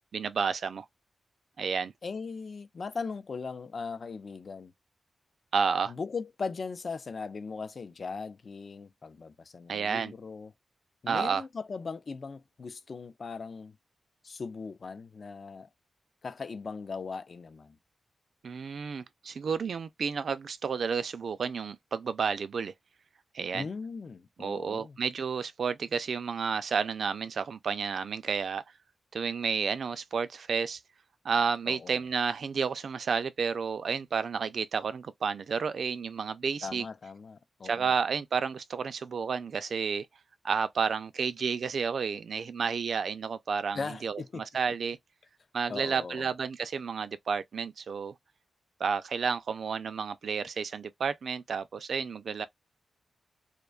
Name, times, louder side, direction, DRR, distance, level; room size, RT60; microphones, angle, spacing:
voice 1, 0.1-0.9 1.6-1.9 5.5-5.9 9.7-10.1 11.1-11.4 18.4-22.7 23.3-23.7 24.4-28.6 29.1-30.8 31.2-36.8 37.6-40.1 40.4-45.0 45.5-48.1 48.8-52.5, right 6 dB, 70° right, 0.3 m, -31 dB
voice 2, 2.0-4.7 5.9-10.5 11.0-13.8 14.2-15.7 16.2-17.8 23.5-25.0 31.7-32.0 36.6-38.0 43.7-44.4 45.7-46.3, left 4 dB, 55° left, 0.4 m, -39 dB
2.4 x 2.2 x 2.3 m
wide cardioid pair, 95°, 0 cm